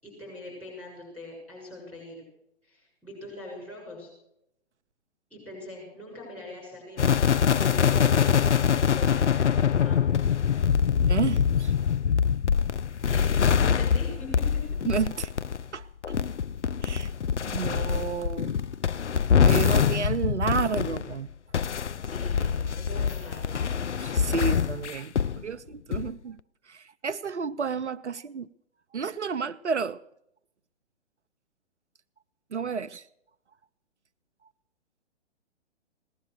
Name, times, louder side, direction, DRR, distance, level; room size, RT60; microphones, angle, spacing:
voice 1, 0.0-2.2 2.6-4.1 5.3-7.1 7.4-8.1 8.7-10.0 13.1-13.3 13.6-14.5 21.8-23.7, left 2 dB, 5° left, 6.8 m, -42 dB
sound 1, 7.0-21.1 21.5-25.4 25.9-26.1, left 7 dB, 85° left, 0.5 m, -24 dB
voice 2, 11.1-11.7 14.9-15.3 15.7-15.9 16.8-17.1 17.5-18.5 19.4-21.3 24.0-26.4 26.7-28.5 28.9-30.0 32.5-33.0, right 6 dB, 80° right, 0.6 m, -31 dB
17.0 x 11.5 x 6.5 m
figure-of-eight pair, 130°, 34 cm